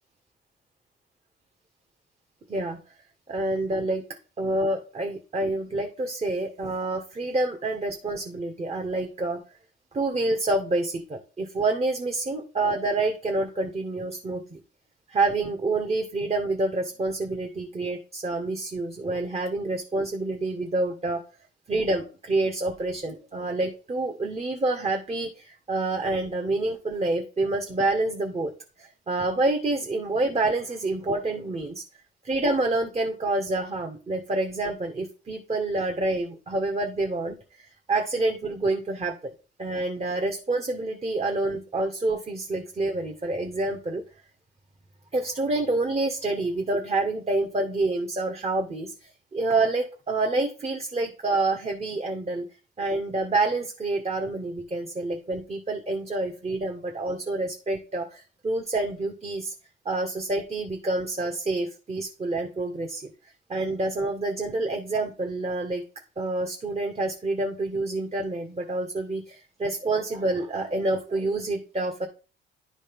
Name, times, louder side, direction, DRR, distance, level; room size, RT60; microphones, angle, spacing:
voice 1, 3.3-4.0 4.4-9.4 9.9-14.6 15.1-21.2 21.7-28.5 28.8-31.8 32.2-39.3 39.6-44.0 45.1-52.5 52.8-59.5 59.8-63.1 63.5-65.8 66.2-72.1, right 2 dB, 30° right, 3 dB, 1.5 m, -27 dB
10.5 x 4.1 x 5.3 m, 0.34 s
cardioid pair, 90°, 20 cm